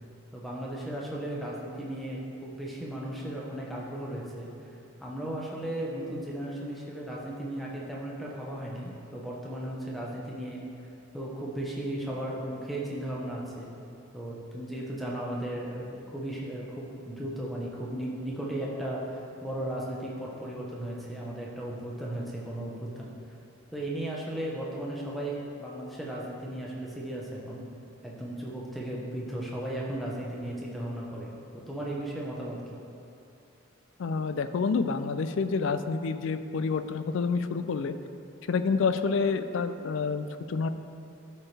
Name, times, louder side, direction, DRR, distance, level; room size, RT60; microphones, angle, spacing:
voice 1, 0.3-4.7 5.0-10.6 11.1-13.7 14.1-23.1 23.7-27.6 28.0-32.6, right 1 dB, ahead, -5 dB, 0.9 m, -36 dB
voice 2, 34.0-38.0 38.5-40.7, left 4 dB, 70° left, 11 dB, 0.4 m, -28 dB
12.5 x 4.4 x 3.3 m, 2.7 s
head